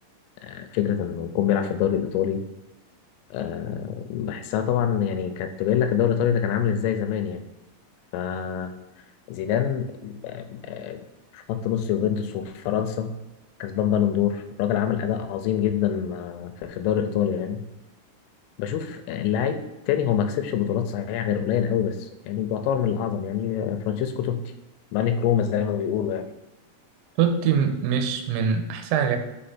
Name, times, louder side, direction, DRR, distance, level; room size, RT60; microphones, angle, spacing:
voice 1, 0.4-2.4 3.3-7.4 8.1-8.7 9.3-11.0 11.3-13.1 13.6-17.6 18.6-24.4 24.9-26.3, left 9 dB, 85° left, 8 dB, 3.0 m, -25 dB
voice 2, 27.2-29.2, right 7 dB, 80° right, 6 dB, 2.7 m, -23 dB
6.6 x 5.5 x 4.3 m, 1.0 s
omnidirectional pair, 6.0 m